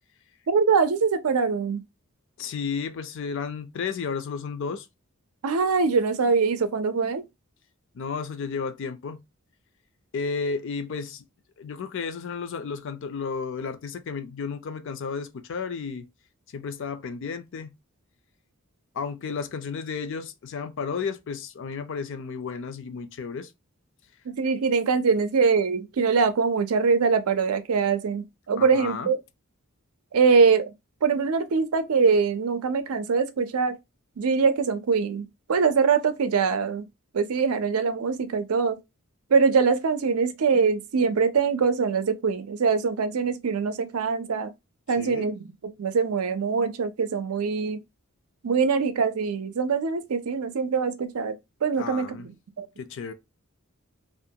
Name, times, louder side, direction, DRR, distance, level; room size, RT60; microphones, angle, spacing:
voice 1, 0.5-1.8 5.4-7.2 24.3-29.2 30.1-30.7 31.0-33.8 34.2-36.9 37.1-38.8 39.3-44.5 44.9-47.8 48.4-51.3 51.6-52.7, right 5 dB, 85° right, 0.5 m, -23 dB
voice 2, 2.4-4.9 7.9-9.2 10.1-11.2 11.6-16.1 16.5-17.7 18.9-23.5 28.6-29.1 45.0-45.3 51.8-52.3 52.8-53.1, left 5 dB, 60° left, 0.4 m, -33 dB
2.5 x 2.2 x 2.7 m
head